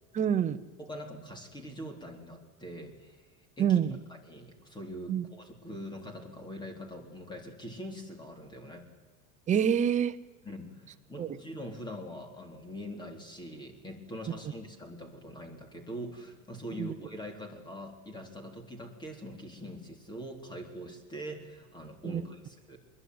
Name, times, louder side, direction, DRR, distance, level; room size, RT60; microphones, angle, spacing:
voice 1, 0.1-0.6 3.6-3.9 5.1-5.2 9.5-10.2 11.2-11.3 16.8-16.9 22.0-22.2, right 8 dB, 15° right, 8 dB, 0.8 m, -26 dB
voice 2, 0.8-3.8 4.2-8.9 10.4-22.8, equal, 10° left, 4 dB, 3.7 m, -43 dB
25.5 x 22.0 x 9.6 m, 1.3 s
supercardioid pair, 160°, 41 cm